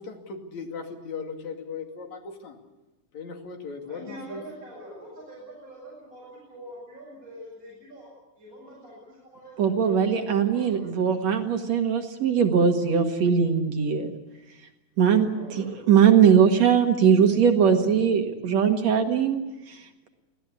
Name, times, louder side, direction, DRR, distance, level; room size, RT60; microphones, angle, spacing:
voice 1, 0.0-2.6 3.1-4.4, left 5 dB, 65° left, 3 dB, 3.7 m, -38 dB
voice 2, 3.9-8.1 8.4-11.0 15.3-15.7, equal, 25° right, -5 dB, 8.0 m, -44 dB
voice 3, 9.6-14.1 15.0-15.3 15.6-19.4 19.7-19.8, right 7 dB, 60° right, 4 dB, 2.8 m, -20 dB
24.5 x 17.5 x 8.4 m, 1.0 s
omnidirectional pair, 3.6 m